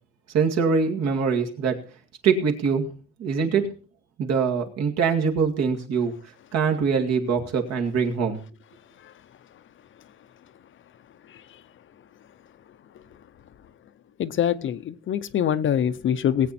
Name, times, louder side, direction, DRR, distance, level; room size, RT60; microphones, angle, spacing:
voice 1, 0.3-1.8 2.2-2.9 3.2-3.7 4.2-6.1 6.5-8.4, right 5 dB, 60° right, 2.3 m, -23 dB
voice 2, 11.3-11.6 14.2-16.5, left 9 dB, 45° left, 0.7 m, -25 dB
19.0 x 8.5 x 4.2 m
cardioid pair, 150°, 29 cm